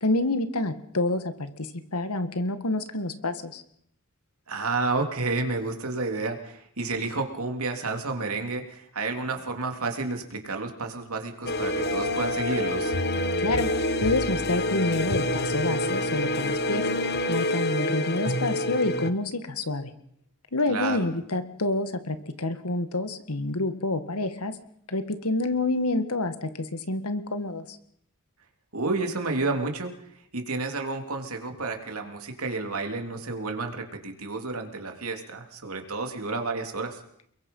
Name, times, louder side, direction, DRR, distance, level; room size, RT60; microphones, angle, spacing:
voice 1, 0.0-3.6 13.4-13.7 14.0-16.8 17.3-19.9 20.5-24.5 24.9-27.8, left 2 dB, 80° left, 10 dB, 1.8 m, -28 dB
voice 2, 4.5-12.9 20.7-21.0 28.7-29.9 30.3-37.0, right 3 dB, 70° right, 4 dB, 3.3 m, -30 dB
sound 1, 11.5-19.1, left 1 dB, 50° left, 1.3 m, -27 dB
29.5 x 22.0 x 5.6 m, 0.70 s
head